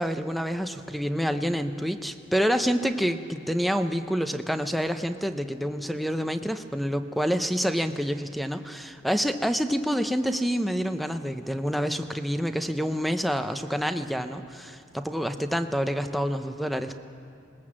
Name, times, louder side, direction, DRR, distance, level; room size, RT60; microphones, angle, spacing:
voice 1, 0.0-17.0, equal, ahead, 8 dB, 0.7 m, -27 dB
20.5 x 19.5 x 7.5 m, 2.5 s
head